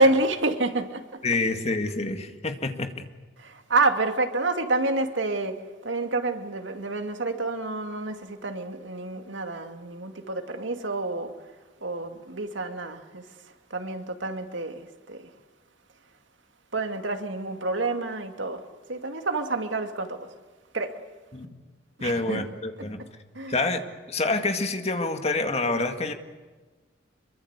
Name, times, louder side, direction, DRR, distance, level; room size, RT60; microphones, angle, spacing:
voice 1, 0.0-1.2 3.4-5.5 5.8-11.3 11.8-13.2 13.7-15.3 16.7-18.6 18.9-20.3 20.7-21.0 22.0-22.4 23.3-23.5, right 2 dB, 90° right, 2.5 m, -28 dB
voice 2, 1.2-3.0 21.3-21.5 22.0-23.0 23.5-23.8 24.1-26.1, left 3 dB, 35° left, 2.1 m, -27 dB
26.0 x 23.5 x 8.2 m
head